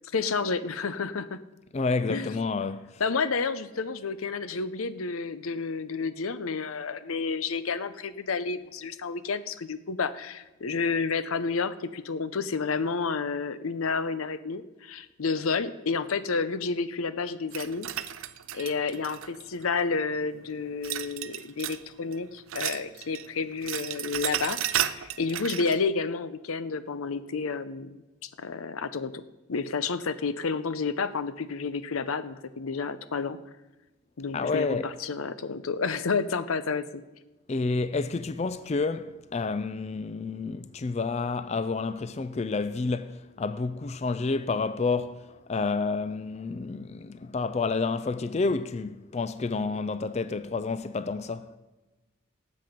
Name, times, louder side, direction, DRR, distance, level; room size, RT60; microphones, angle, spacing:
voice 1, 0.1-1.4 2.1-2.4 3.0-17.9 18.5-24.6 24.8-29.2 29.5-33.4 34.2-37.0, left 4 dB, 85° left, 0.6 m, -30 dB
voice 2, 1.7-3.0 34.3-34.9 37.5-45.2 45.5-51.5, left 4 dB, 30° left, 0.3 m, -29 dB
sound 1, 17.5-19.6 20.8-21.9 22.1-23.3 23.5-25.8, right 11 dB, 75° right, 0.5 m, -33 dB
18.0 x 7.6 x 5.1 m
head